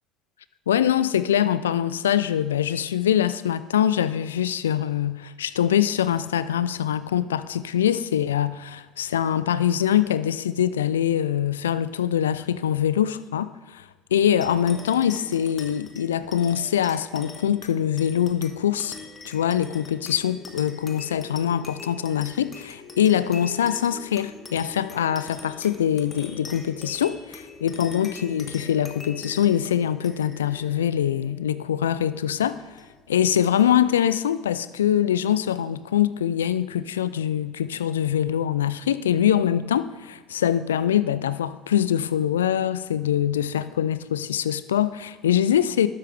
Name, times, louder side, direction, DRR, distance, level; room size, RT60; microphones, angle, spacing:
voice 1, 0.7-13.9 14.1-19.0 19.2-32.6 33.1-45.9, left 10 dB, 85° left, 15 dB, 0.3 m, -23 dB
sound 1, 14.4-33.2, left 4 dB, 35° left, 1.4 m, -43 dB
12.0 x 7.8 x 3.5 m, 1.3 s
hypercardioid pair, 65°, 0 cm